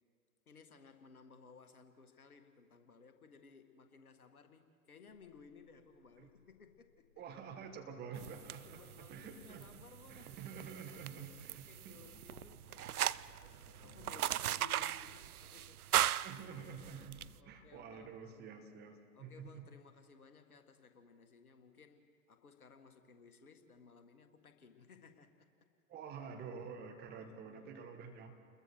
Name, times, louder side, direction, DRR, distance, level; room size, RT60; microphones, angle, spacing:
voice 1, 0.5-7.1 8.6-10.5 10.9-15.8 17.1-18.4 19.2-25.7 27.3-27.4, left 5 dB, 70° left, 7 dB, 1.8 m, -60 dB
sound 1, 5.1-11.5 11.7-18.2, left 1 dB, 25° left, 3.9 m, -64 dB
voice 2, 7.2-12.0 13.8-14.0 16.2-19.7 25.9-28.3, right 6 dB, 20° right, 4 dB, 1.7 m, -49 dB
sound 2, 8.2-17.3, right 11 dB, 70° right, 0.5 m, -39 dB
29.5 x 21.5 x 4.6 m, 2.1 s
figure-of-eight pair, 110°, 46 cm